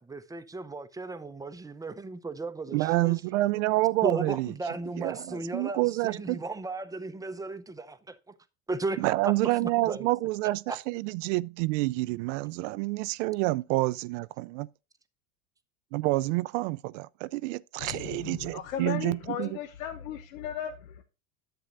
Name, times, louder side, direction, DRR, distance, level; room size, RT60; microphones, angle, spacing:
voice 1, 0.0-3.1 4.0-8.2 8.7-10.1 10.7-10.8, right 3 dB, 10° right, 0.7 m, -35 dB
voice 2, 2.7-4.5 5.0-6.4 9.0-14.7 15.9-19.6, right 19 dB, 65° right, 0.5 m, -28 dB
voice 3, 17.8-21.0, left 10 dB, 80° left, 0.9 m, -36 dB
10.5 x 7.8 x 2.5 m
supercardioid pair, 105°, 40 cm